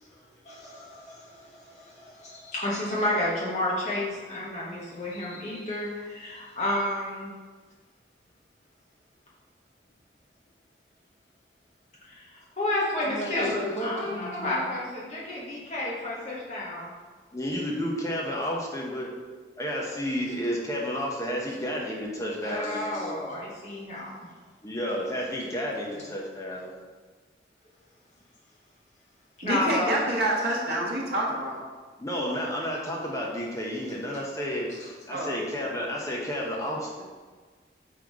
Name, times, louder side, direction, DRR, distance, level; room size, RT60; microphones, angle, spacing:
voice 1, 0.4-7.3 12.1-16.9 22.4-24.3 29.4-30.0 30.4-30.5 34.7-34.9, left 1 dB, 40° left, -6 dB, 1.2 m, -31 dB
voice 2, 13.0-14.5 17.3-19.2 19.6-23.2 24.6-26.8 32.0-37.1, equal, 20° left, -3 dB, 0.7 m, -31 dB
voice 3, 29.4-31.6 35.1-35.3, right 1 dB, 60° right, -3 dB, 0.9 m, -27 dB
3.7 x 2.9 x 4.8 m, 1.4 s
head